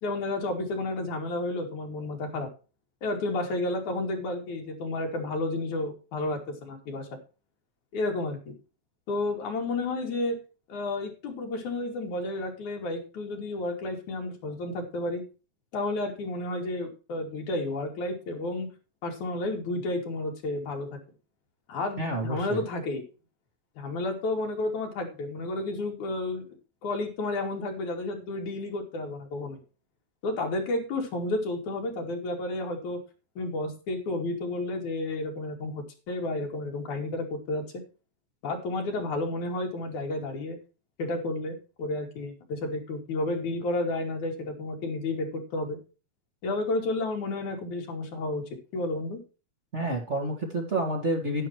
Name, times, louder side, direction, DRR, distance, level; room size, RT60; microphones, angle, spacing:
voice 1, 0.0-2.5 3.0-7.1 7.9-8.5 9.1-10.4 10.7-15.2 15.7-18.7 19.0-20.9 21.7-23.0 23.8-26.5 26.8-29.6 30.2-33.0 33.4-37.6 38.4-40.6 41.0-45.8 46.4-48.4 48.7-49.2, left 2 dB, 90° left, 2 dB, 4.2 m, -31 dB
voice 2, 22.0-22.6 49.7-51.5, right 1 dB, 25° right, 1 dB, 2.1 m, -29 dB
11.0 x 10.5 x 3.2 m, 0.32 s
omnidirectional pair, 3.3 m